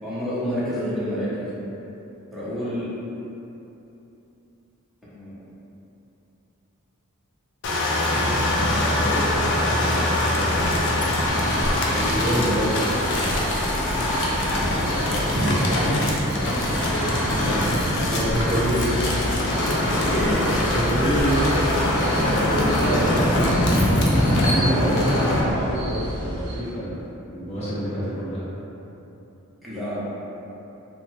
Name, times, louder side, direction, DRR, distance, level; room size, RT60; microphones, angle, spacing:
voice 1, 0.0-1.7 2.3-2.9 5.1-5.4 8.4-9.3 12.3-12.5 14.4-16.0 16.6-18.1 20.1-20.4 22.2-23.1 29.6-30.0, equal, ahead, -12 dB, 0.8 m, -30 dB
sound 1, 7.6-25.4, left 1 dB, 55° left, 0.4 m, -24 dB
sound 2, 8.1-25.5, equal, 75° left, 1.0 m, -28 dB
sound 3, 11.3-26.6, equal, 50° right, 0.6 m, -33 dB
voice 2, 11.9-13.5 15.3-16.1 16.6-16.7 18.0-18.9 20.7-21.7 23.4-23.5 23.9-27.0 27.2-28.4, right 1 dB, 30° left, -11 dB, 0.9 m, -27 dB
3.0 x 2.1 x 3.0 m, 3.0 s
head